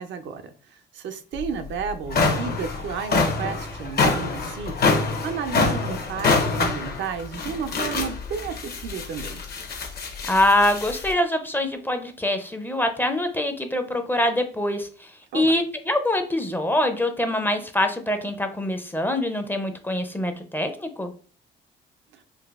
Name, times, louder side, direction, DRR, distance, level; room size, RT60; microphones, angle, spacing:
voice 1, 0.0-4.7 5.0-9.4 15.3-15.5 22.1-22.2, right 6 dB, 70° right, 8 dB, 0.5 m, -33 dB
sound 1, 1.4-1.5 1.9-11.1, left 3 dB, 55° left, 0.8 m, -25 dB
voice 2, 10.3-15.1 15.3-21.1, left 1 dB, 10° left, 7 dB, 0.5 m, -24 dB
3.9 x 2.5 x 2.3 m, 0.40 s
cardioid pair, 90°, 20 cm